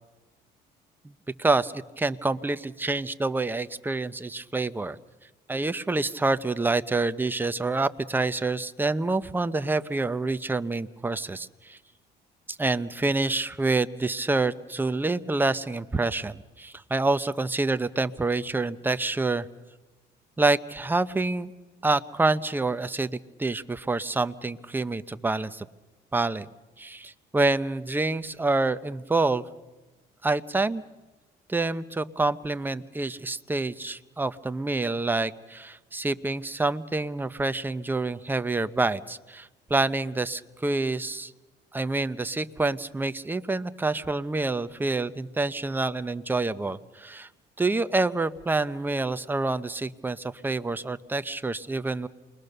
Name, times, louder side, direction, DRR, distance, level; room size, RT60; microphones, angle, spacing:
voice 1, 1.4-5.0 5.5-11.8 12.5-19.5 20.4-21.5 21.8-25.7 26.1-26.5 26.8-29.5 30.2-30.8 31.5-41.3 41.7-47.3 47.6-52.1, right 3 dB, 10° right, 12 dB, 0.8 m, -27 dB
28.0 x 21.0 x 6.7 m, 1.1 s
cardioid pair, 110°, 17 cm